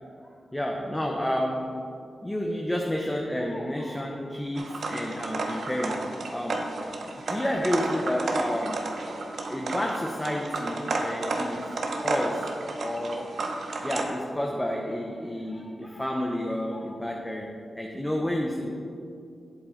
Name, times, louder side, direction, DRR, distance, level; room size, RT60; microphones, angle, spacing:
voice 1, 0.5-1.9 2.2-6.8 7.0-8.9 9.5-11.7 12.0-18.7, left 1 dB, 15° left, 0 dB, 0.8 m, -30 dB
sound 1, 4.6-14.1, right 3 dB, 75° right, 0.8 m, -32 dB
7.9 x 7.5 x 3.9 m, 2.5 s
cardioid pair, 45°, 0 cm